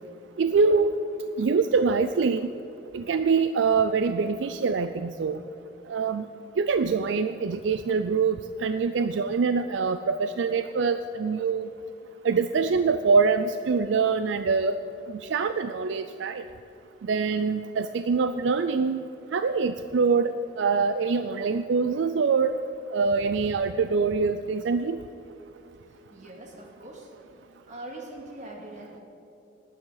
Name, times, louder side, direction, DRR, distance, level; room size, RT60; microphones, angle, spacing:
voice 1, 0.4-1.0 1.4-2.5 2.9-5.4 5.9-6.3 6.6-11.7 12.2-14.8 15.3-16.4 17.1-19.0 19.3-22.6 22.9-25.0, right 5 dB, 75° right, 10 dB, 0.4 m, -24 dB
voice 2, 26.1-27.1 27.7-29.0, right 1 dB, 40° right, -1 dB, 2.2 m, -42 dB
19.5 x 9.1 x 4.0 m, 2.9 s
head